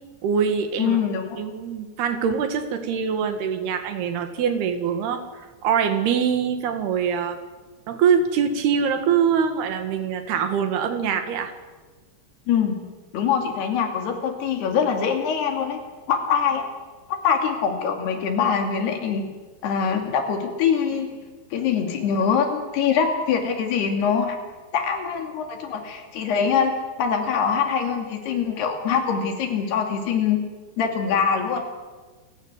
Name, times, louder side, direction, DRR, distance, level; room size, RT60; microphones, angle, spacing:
voice 1, 0.2-1.0 1.4-5.2 5.6-7.4 7.9-11.5, right 7 dB, 80° right, 8 dB, 3.9 m, -23 dB
voice 2, 0.8-1.4 12.5-12.8 13.1-15.8 16.1-16.7 17.2-19.2 19.6-21.1 21.5-24.4 24.7-26.7 27.0-30.4 30.8-31.6, left 7 dB, 90° left, 4 dB, 4.7 m, -23 dB
28.0 x 16.0 x 8.2 m, 1.3 s
omnidirectional pair, 4.5 m